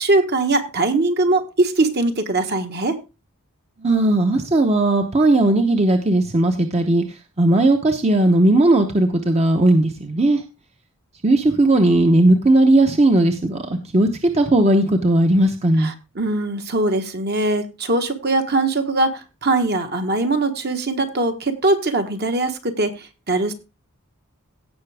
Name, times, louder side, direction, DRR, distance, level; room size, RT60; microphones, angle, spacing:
voice 1, 0.0-3.0 15.8-22.9 23.3-23.5, right 2 dB, 50° right, 5 dB, 1.5 m, -21 dB
voice 2, 3.8-7.0 7.4-10.4 11.2-15.9, right 1 dB, 30° right, 4 dB, 0.9 m, -17 dB
17.0 x 5.9 x 3.5 m, 0.28 s
head